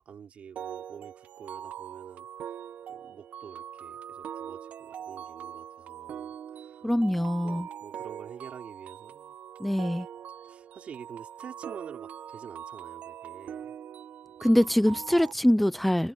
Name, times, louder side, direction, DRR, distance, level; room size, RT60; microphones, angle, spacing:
voice 1, 0.0-2.6 2.9-9.8 10.4-13.8, right 7 dB, 65° right, 3.5 m, -48 dB
sound 1, 0.6-15.3, right 9 dB, 85° right, 0.7 m, -42 dB
voice 2, 6.8-7.7 9.6-10.1 14.4-16.1, equal, 5° left, 0.5 m, -24 dB
wide cardioid pair, 130°, 2 cm